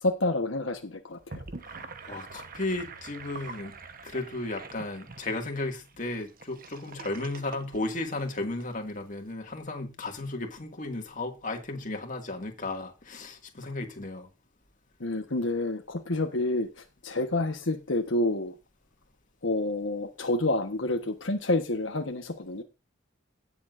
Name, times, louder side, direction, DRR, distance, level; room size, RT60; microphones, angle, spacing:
voice 1, 0.0-1.4 15.0-18.5 19.4-22.6, left 2 dB, 75° left, 1.3 m, -29 dB
Gurgling / Sink (filling or washing), 1.1-8.6, right 4 dB, 45° right, 1.1 m, -45 dB
voice 2, 1.6-3.7 4.0-14.3, left 2 dB, 40° left, 2.2 m, -34 dB
17.5 x 7.2 x 2.6 m
head